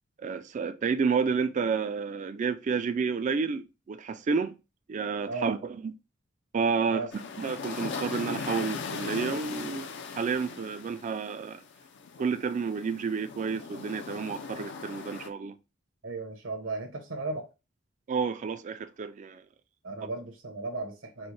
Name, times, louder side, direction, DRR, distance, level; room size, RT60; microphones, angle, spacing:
voice 1, 0.2-4.5 4.9-5.9 6.5-9.9 10.2-11.6 12.2-15.6 18.1-19.4, right 5 dB, 40° right, 0.3 m, -30 dB
sound 1, 7.1-15.3, left 5 dB, 60° left, 0.5 m, -39 dB
voice 2, 16.0-17.5 19.8-21.3, right 3 dB, 80° right, 1.1 m, -35 dB
4.3 x 2.2 x 3.1 m
head